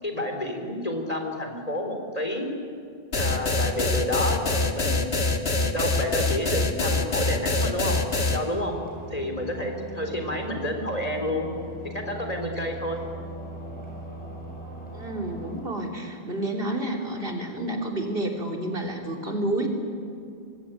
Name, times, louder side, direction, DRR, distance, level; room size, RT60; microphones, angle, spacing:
voice 1, 0.0-2.5 3.1-5.1 5.7-8.0 8.3-8.8 9.1-11.5 11.9-13.0, left 1 dB, 35° left, 3 dB, 3.8 m, -30 dB
sound 1, 3.1-8.4, left 3 dB, 75° left, 2.2 m, -24 dB
sound 2, 7.1-15.6, right 1 dB, 10° left, 7.0 m, -40 dB
voice 2, 14.9-19.7, right 1 dB, 65° right, 1 dB, 3.7 m, -30 dB
26.0 x 22.5 x 9.1 m, 2.4 s
omnidirectional pair, 1.1 m